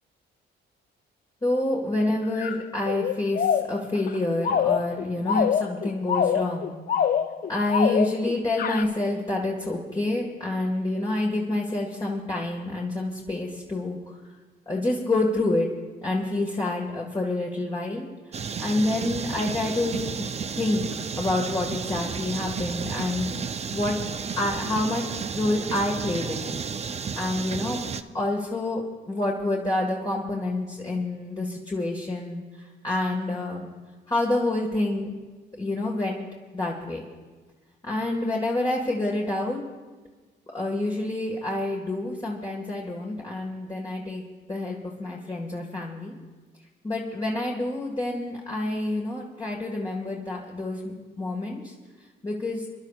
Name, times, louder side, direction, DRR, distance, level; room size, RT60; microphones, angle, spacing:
voice 1, 1.4-6.8 7.5-14.2 14.7-15.7 16.0-20.3 20.6-20.8 21.2-24.0 24.4-26.6 27.2-27.9 28.1-33.7 34.1-35.1 35.6-36.2 36.5-37.0 37.8-39.6 40.5-44.2 44.5-46.1 46.8-51.7 52.2-52.7, left 2 dB, 20° left, -2 dB, 1.7 m, -28 dB
sound 1, 2.4-8.3 8.6-8.8, left 8 dB, 50° left, 0.6 m, -25 dB
sound 2, 18.3-28.0, right 6 dB, 35° right, 0.5 m, -32 dB
29.5 x 11.5 x 2.4 m, 1.4 s
cardioid pair, 90°, 20 cm